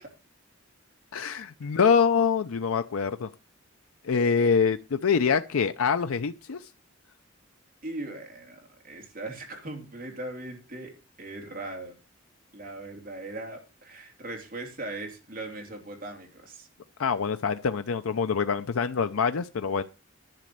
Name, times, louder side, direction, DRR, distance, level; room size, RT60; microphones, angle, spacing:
voice 1, 1.1-3.3 4.0-6.7 17.0-19.8, left 6 dB, 80° left, 10 dB, 0.5 m, -25 dB
voice 2, 7.8-10.9 11.2-11.9 12.5-16.7, right 2 dB, 40° right, 2 dB, 3.0 m, -39 dB
10.5 x 5.1 x 7.8 m, 0.31 s
head